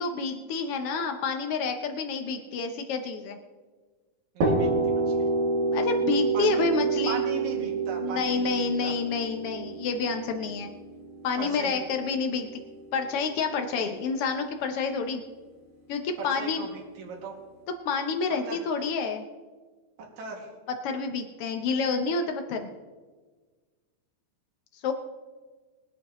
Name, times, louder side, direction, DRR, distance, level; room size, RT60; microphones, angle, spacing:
voice 1, 0.0-3.4 5.7-7.2 8.0-10.7 11.2-12.6 12.9-15.2 15.9-16.6 17.8-19.2 20.8-22.7 24.8-24.9, left 5 dB, 90° left, 5 dB, 1.2 m, -29 dB
voice 2, 4.3-5.2 6.3-6.7 7.1-8.9 11.4-11.8 16.2-17.4 18.4-18.6 20.2-20.5, right 3 dB, 60° right, -2 dB, 3.5 m, -38 dB
sound 1, 4.4-12.1, right 3 dB, 85° right, 4.2 m, -27 dB
22.0 x 10.0 x 3.1 m, 1.4 s
omnidirectional pair, 3.8 m